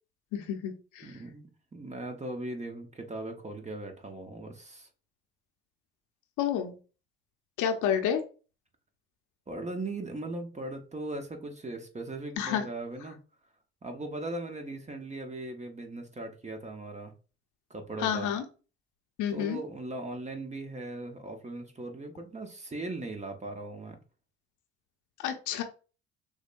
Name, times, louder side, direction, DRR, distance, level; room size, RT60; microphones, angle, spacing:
voice 1, 0.3-1.2 6.4-6.7 7.6-8.2 12.4-12.6 18.0-18.4 19.2-19.6 25.2-25.6, left 9 dB, 60° left, 0.8 m, -29 dB
voice 2, 1.0-4.9 9.5-13.2 13.8-17.1 17.7-18.3 19.3-24.0, right 2 dB, 20° right, 1.0 m, -39 dB
6.2 x 2.2 x 2.6 m
hypercardioid pair, 55°, 34 cm